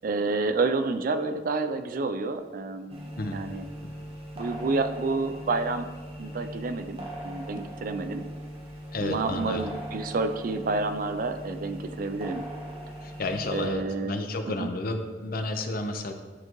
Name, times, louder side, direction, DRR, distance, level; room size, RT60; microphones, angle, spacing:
voice 1, 0.0-3.7 4.3-5.9 6.2-8.3 9.0-12.5 13.5-14.2 14.5-14.7, right 3 dB, 50° right, 9 dB, 0.4 m, -29 dB
sound 1, 2.9-13.7, equal, 35° right, 1.2 m, -40 dB
voice 2, 8.9-9.7 13.0-16.1, left 2 dB, 55° left, 6 dB, 0.6 m, -31 dB
11.5 x 3.8 x 3.0 m, 1.4 s
head